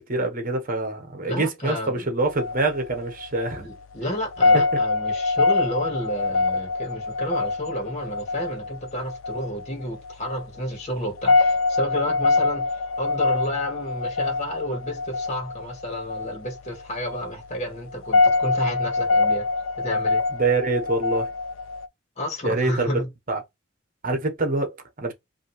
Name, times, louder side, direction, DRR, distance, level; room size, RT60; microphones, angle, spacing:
voice 1, 0.0-3.7 4.5-4.6 20.3-21.3 22.4-23.0 23.3-23.4 24.0-25.1, right 2 dB, 45° right, 1.2 m, -25 dB
voice 2, 1.2-2.1 3.6-12.7 13.0-19.5 19.8-20.2 22.2-23.1, equal, 35° left, 1.7 m, -31 dB
sound 1, 2.2-21.9, left 3 dB, 80° left, 0.5 m, -25 dB
5.4 x 2.8 x 3.2 m
head